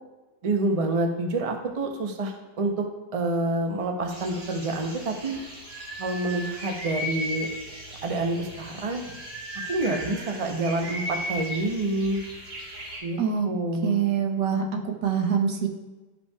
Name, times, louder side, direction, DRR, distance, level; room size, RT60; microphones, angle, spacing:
voice 1, 0.4-2.7 3.1-5.4 6.0-7.5 8.0-9.0 9.7-12.2 13.0-13.2 13.4-14.0, right 2 dB, 50° right, 3 dB, 0.4 m, -27 dB
sound 1, 4.1-13.0, equal, 70° right, 3.4 m, -37 dB
voice 2, 13.2-13.5 13.8-15.7, right 7 dB, 90° right, 2 dB, 1.6 m, -25 dB
13.0 x 5.4 x 2.3 m, 1.2 s
omnidirectional pair, 1.9 m